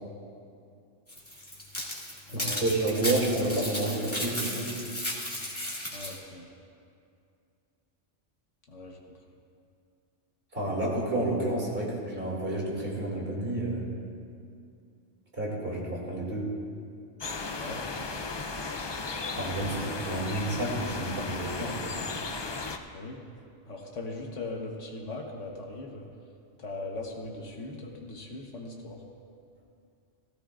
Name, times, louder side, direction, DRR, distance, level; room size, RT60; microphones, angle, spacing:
sound 1, 1.1-6.2, left 1 dB, 10° left, 2.1 m, -35 dB
voice 1, 2.3-4.7 10.5-13.9 15.4-16.5 19.4-21.8, right 2 dB, 50° right, -4 dB, 2.8 m, -30 dB
voice 2, 5.9-6.5 8.7-9.0 17.4-18.5 22.9-23.2 23.7-26.1 26.6-29.0, left 2 dB, 80° left, 0 dB, 1.5 m, -40 dB
sound 2, 17.2-22.8, left 3 dB, 45° left, 0.3 m, -35 dB
17.0 x 15.5 x 2.5 m, 2.4 s
omnidirectional pair, 1.2 m